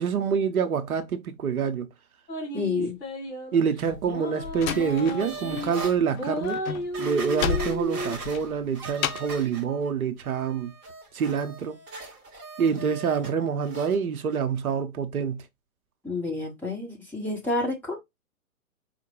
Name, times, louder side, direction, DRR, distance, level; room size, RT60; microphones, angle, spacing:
voice 1, 0.0-1.9 2.8-2.9 3.5-6.6 7.0-10.7 11.1-11.8 12.6-15.4, right 6 dB, 70° right, 0.7 m, -26 dB
sound 1, 2.3-3.6 4.1-5.7 6.1-8.2, equal, 30° left, 2.5 m, -33 dB
voice 2, 2.5-3.0 12.6-12.8 16.0-18.0, left 3 dB, 5° left, 1.0 m, -29 dB
Slam, 3.9-5.7 5.9-9.4, left 9 dB, 70° left, 0.5 m, -33 dB
sound 2, 4.7-6.0 6.5-6.6 6.9-9.9 10.2-13.3 13.6-14.0 14.3-14.4, right 3 dB, 10° right, 0.4 m, -40 dB
4.4 x 2.1 x 3.0 m
figure-of-eight pair, 120°, 44 cm